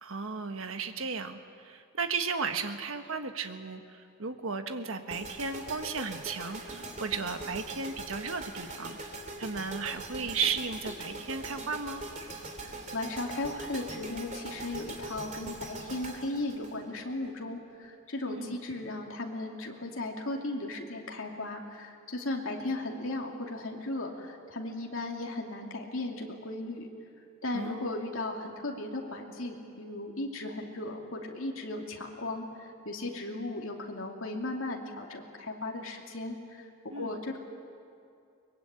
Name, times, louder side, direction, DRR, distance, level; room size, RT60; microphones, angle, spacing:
voice 1, 0.0-1.4 1.6-3.8 4.2-9.0 9.4-12.1 18.2-18.6 27.5-27.9 36.9-37.1, right 5 dB, 75° right, 7 dB, 1.4 m, -34 dB
sound 1, 5.1-17.3, right 2 dB, 35° right, 2.9 m, -42 dB
voice 2, 12.9-26.9 27.4-37.4, left 2 dB, 70° left, 0 dB, 2.7 m, -36 dB
23.0 x 21.5 x 9.0 m, 2.4 s
head